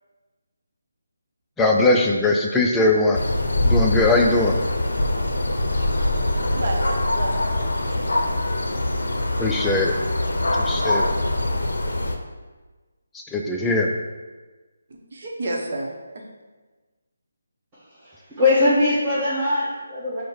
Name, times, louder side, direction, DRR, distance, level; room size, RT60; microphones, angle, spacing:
voice 1, 1.6-3.2 3.6-4.6 9.4-9.9 10.6-11.1 13.3-13.9, left 2 dB, 5° left, 0 dB, 0.4 m, -20 dB
sound 1, 3.1-12.1, left 1 dB, 75° left, 0.5 m, -23 dB
voice 2, 6.4-7.7 15.1-16.2, right 2 dB, 55° right, 0 dB, 0.8 m, -31 dB
voice 3, 17.9-20.2, left 2 dB, 20° right, -10 dB, 0.9 m, -21 dB
4.5 x 2.1 x 4.6 m, 1.3 s
figure-of-eight pair, 160°, 0 cm